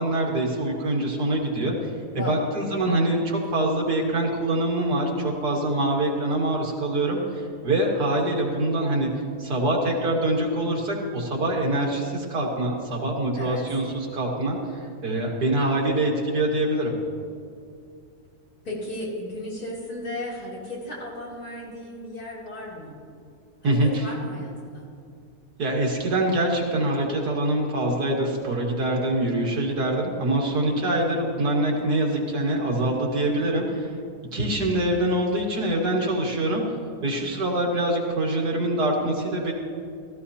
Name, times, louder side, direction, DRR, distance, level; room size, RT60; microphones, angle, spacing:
voice 1, 0.0-1.7 2.1-9.1 9.4-16.9 23.6-24.0 25.6-33.9 34.3-36.6 37.0-39.5, right 1 dB, 90° right, -1 dB, 2.4 m, -24 dB
voice 2, 18.6-22.9 23.6-24.9, left 1 dB, 70° left, -7 dB, 3.8 m, -35 dB
16.0 x 14.0 x 2.8 m, 2.3 s
omnidirectional pair, 1.7 m